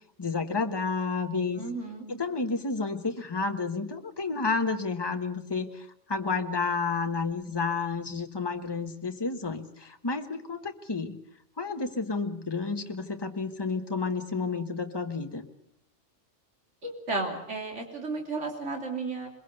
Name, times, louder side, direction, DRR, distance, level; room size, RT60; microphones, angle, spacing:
voice 1, 0.2-1.6 2.1-11.2 11.6-15.5, left 4 dB, 20° left, 6 dB, 1.3 m, -31 dB
voice 2, 1.6-2.0 16.8-19.3, right 3 dB, 80° right, 2 dB, 3.3 m, -33 dB
22.5 x 22.0 x 6.7 m, 0.73 s
omnidirectional pair, 1.2 m